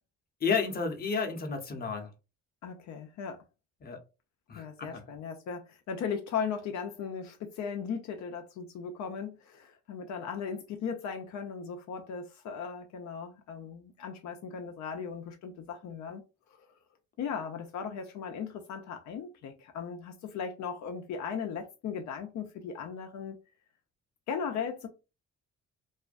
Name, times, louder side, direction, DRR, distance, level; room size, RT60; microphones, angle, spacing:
voice 1, 0.4-2.1 3.8-4.0 4.5-5.0, left 5 dB, 30° left, 0.7 m, -31 dB
voice 2, 2.6-3.4 4.5-16.2 17.2-23.4 24.3-24.9, left 6 dB, 70° left, 0.5 m, -37 dB
2.4 x 2.1 x 2.4 m
cardioid pair, 90°, 30 cm